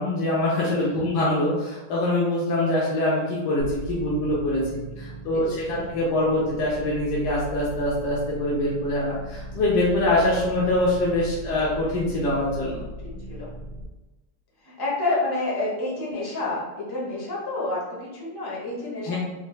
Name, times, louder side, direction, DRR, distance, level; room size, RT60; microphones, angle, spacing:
voice 1, 0.0-12.8 19.0-19.2, left 1 dB, 75° left, -6 dB, 1.3 m, -24 dB
sound 1, 3.6-13.8, equal, 10° left, 0.8 m, -38 dB
voice 2, 13.0-13.5 14.6-19.2, left 2 dB, 35° left, -5 dB, 0.3 m, -29 dB
4.4 x 3.1 x 2.2 m, 1.1 s
omnidirectional pair, 1.9 m